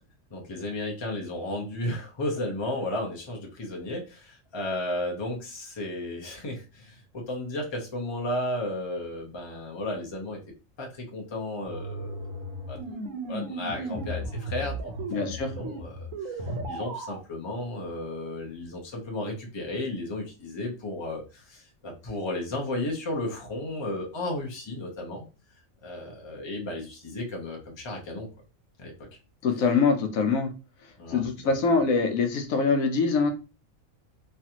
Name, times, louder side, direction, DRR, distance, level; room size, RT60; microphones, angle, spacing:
voice 1, 0.3-10.4 10.8-13.0 13.3-16.4 16.7-25.3 25.8-28.3 28.8-28.9 31.0-31.5, left 1 dB, 25° left, 0 dB, 0.6 m, -34 dB
sound 1, 11.6-17.2, right 1 dB, 75° right, 1.1 m, -35 dB
voice 2, 15.1-15.5 29.4-30.5 31.1-33.3, left 4 dB, 80° left, 5 dB, 1.0 m, -24 dB
3.2 x 2.4 x 2.8 m, 0.32 s
omnidirectional pair, 1.4 m